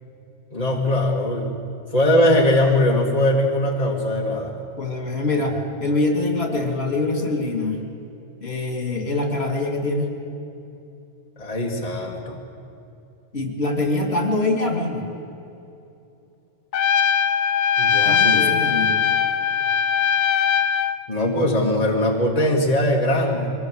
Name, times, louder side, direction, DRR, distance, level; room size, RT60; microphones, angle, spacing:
voice 1, 0.5-1.5 1.9-4.5 11.4-12.4 17.8-18.5 21.1-23.5, left 1 dB, 35° left, -1 dB, 2.0 m, -20 dB
voice 2, 4.8-7.8 8.4-10.1 13.3-15.1 18.0-19.1, left 2 dB, 55° left, 2 dB, 2.9 m, -24 dB
Trumpet, 16.7-21.0, left 7 dB, 75° left, 1.0 m, -20 dB
23.0 x 19.5 x 8.1 m, 2.8 s
omnidirectional pair, 1.2 m